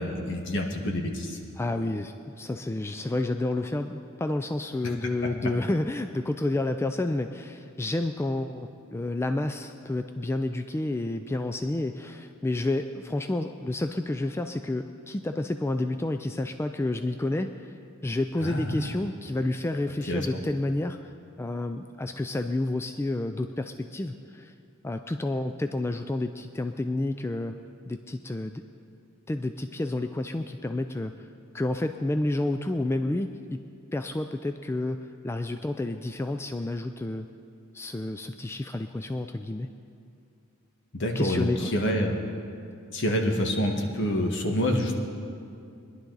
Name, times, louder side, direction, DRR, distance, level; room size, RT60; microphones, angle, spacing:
voice 1, 0.0-1.4 5.0-5.1 5.4-5.5 18.4-18.9 20.1-20.3 40.9-42.2 42.9-44.9, equal, 60° left, 2 dB, 1.5 m, -27 dB
voice 2, 1.6-24.5 24.8-27.6 27.9-28.6 29.3-31.3 31.5-33.6 33.9-37.3 37.7-39.7 41.2-41.7, left 2 dB, 10° left, 8 dB, 0.3 m, -30 dB
21.0 x 11.0 x 4.0 m, 2.5 s
head